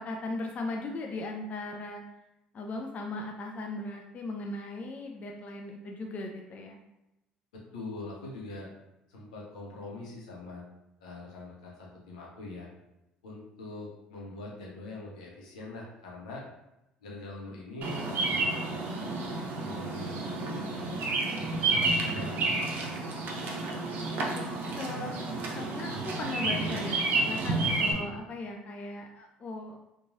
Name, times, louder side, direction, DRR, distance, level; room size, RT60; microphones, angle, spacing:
voice 1, 0.0-2.0 2.5-6.8 22.0-22.2 24.0-24.4 24.8-25.1 25.5-29.8, left 2 dB, 40° left, 2 dB, 0.3 m, -38 dB
voice 2, 7.5-8.7 9.1-10.6 11.0-12.7 13.2-16.4 17.0-18.8 19.6-21.0 22.0-22.9 27.8-28.1, left 2 dB, 85° left, -3 dB, 0.7 m, -43 dB
Bird vocalization bird call bird song, 17.8-27.9, right 3 dB, 55° right, 0.5 m, -30 dB
3.0 x 2.2 x 2.6 m, 0.91 s
hypercardioid pair, 60°, 4 cm